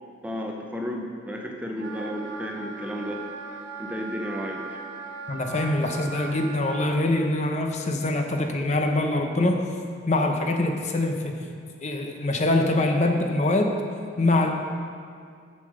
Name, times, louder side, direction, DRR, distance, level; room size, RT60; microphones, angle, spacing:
voice 1, 0.2-3.2 3.8-4.8, equal, 5° right, 1 dB, 0.6 m, -33 dB
Wind instrument woodwind instrument, 1.8-7.0, right 4 dB, 65° right, 1.1 m, -38 dB
voice 2, 5.3-9.7 10.1-11.4 11.8-13.7 14.2-14.5, left 2 dB, 35° left, 3 dB, 0.7 m, -24 dB
7.1 x 6.7 x 6.2 m, 2.2 s
head